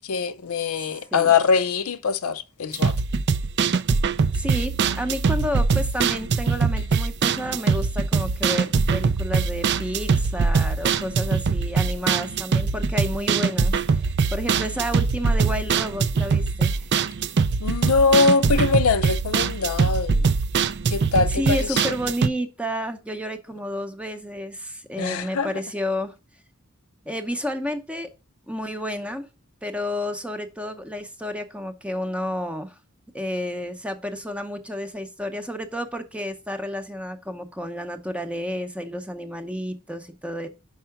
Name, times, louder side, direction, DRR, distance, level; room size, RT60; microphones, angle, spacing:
voice 1, 0.1-2.9 17.6-20.3 20.9-21.8 25.0-25.5, left 5 dB, 70° left, 0.5 m, -22 dB
sound 1, 2.7-22.3, right 5 dB, 50° right, 0.4 m, -22 dB
voice 2, 4.3-16.8 21.3-26.1 27.1-28.1 28.5-29.3 29.6-32.8 33.1-40.5, equal, 5° right, 0.7 m, -31 dB
5.5 x 4.7 x 5.7 m
head